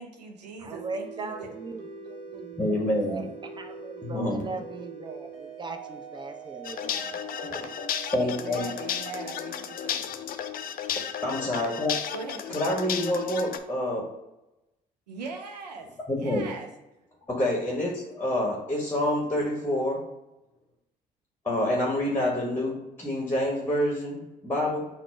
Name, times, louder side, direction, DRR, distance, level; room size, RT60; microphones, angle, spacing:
voice 1, 0.0-1.5 8.2-9.8 12.1-12.6 15.1-15.9 16.2-16.7, right 4 dB, 90° right, 4 dB, 0.4 m, -40 dB
voice 2, 0.6-3.2 3.5-7.2 7.5-7.7, right 3 dB, 20° right, 5 dB, 0.6 m, -39 dB
sound 1, 0.7-11.0, right 5 dB, 65° right, 0.9 m, -43 dB
voice 3, 2.6-3.2 4.1-4.4 7.5-7.7 8.1-8.7 11.2-12.0 12.5-14.1 16.1-16.5 17.3-20.0 21.4-24.9, left 1 dB, 10° left, -1 dB, 1.1 m, -27 dB
sound 2, 6.6-13.6, left 9 dB, 45° left, 0.4 m, -34 dB
4.0 x 2.1 x 4.4 m, 0.95 s
hypercardioid pair, 50°, 20 cm